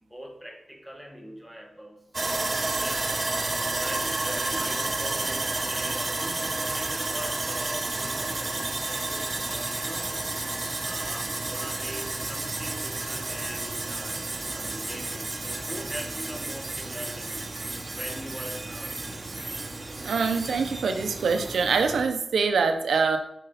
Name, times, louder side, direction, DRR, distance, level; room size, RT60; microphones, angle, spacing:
voice 1, 0.0-3.1 3.7-10.1 10.8-17.4 17.9-19.0, equal, ahead, 2 dB, 1.3 m, -42 dB
Sawing, 2.1-22.1, right 2 dB, 40° right, 0.7 m, -31 dB
voice 2, 20.0-23.2, right 5 dB, 85° right, 6 dB, 0.6 m, -24 dB
5.8 x 4.5 x 4.0 m, 0.78 s
cardioid pair, 45°, 0 cm